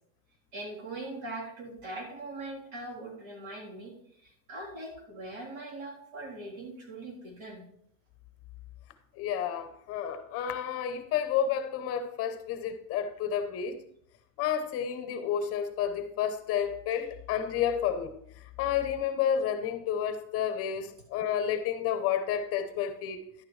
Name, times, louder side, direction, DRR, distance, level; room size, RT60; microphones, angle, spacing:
voice 1, 0.5-7.7, right 2 dB, 80° right, -3 dB, 3.6 m, -41 dB
voice 2, 9.2-13.8 14.4-18.1 18.6-23.2, left 8 dB, 35° left, 9 dB, 0.7 m, -30 dB
11.0 x 9.1 x 3.2 m, 0.75 s
supercardioid pair, 160°, 42 cm